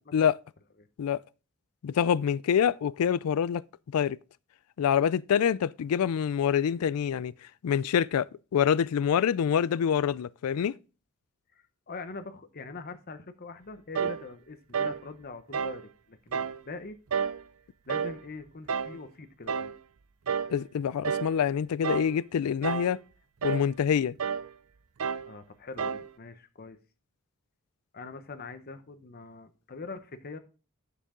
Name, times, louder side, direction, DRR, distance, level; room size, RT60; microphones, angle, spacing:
voice 1, 1.8-3.6 3.9-4.2 4.8-7.3 7.6-10.7 20.5-23.0 23.4-24.1, left 8 dB, 85° left, 0.3 m, -26 dB
voice 2, 11.5-17.0 17.9-19.7 25.2-26.8 27.9-30.4, left 3 dB, 45° left, 0.8 m, -43 dB
sound 1, 13.9-14.2 14.7-15.0 15.5-15.8 16.3-16.6 17.1-17.4 17.9-18.2 18.7-19.0 19.5-19.8 20.3-20.6 21.0-21.3 21.8-22.2 22.6-23.0 23.4-23.7 24.2-24.5 25.0-25.3 25.8-26.1, right 6 dB, 80° right, 0.6 m, -30 dB
10.0 x 6.9 x 3.7 m
head